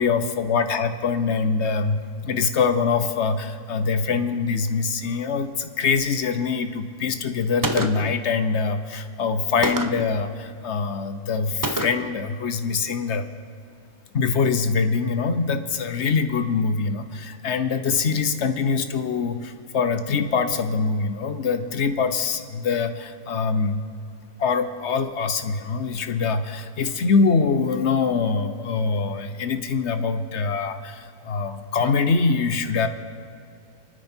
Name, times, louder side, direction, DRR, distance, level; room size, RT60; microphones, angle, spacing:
voice 1, 0.0-13.3 14.1-23.8 24.4-32.9, left 5 dB, 55° left, 9 dB, 1.2 m, -24 dB
Gunshot gunfire, 7.6-8.2 9.6-10.2 11.6-12.2, right 2 dB, 25° right, 0.4 m, -27 dB
28.5 x 9.8 x 4.5 m, 2.4 s
omnidirectional pair, 1.5 m